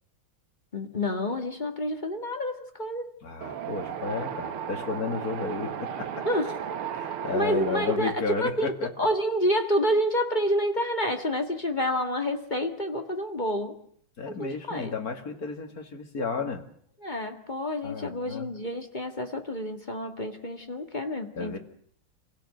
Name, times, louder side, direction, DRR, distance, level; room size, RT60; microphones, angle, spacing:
voice 1, 0.7-3.2 6.2-6.6 7.3-13.8 14.3-14.9 17.0-21.6, equal, 20° left, 5 dB, 1.9 m, -28 dB
voice 2, 3.2-6.3 6.9-8.9 14.2-16.6 17.8-18.5 21.4-21.6, left 4 dB, 45° left, 5 dB, 2.7 m, -32 dB
Wind, 3.4-8.0, right 8 dB, 80° right, 2.1 m, -35 dB
27.5 x 16.5 x 7.9 m, 0.62 s
omnidirectional pair, 2.4 m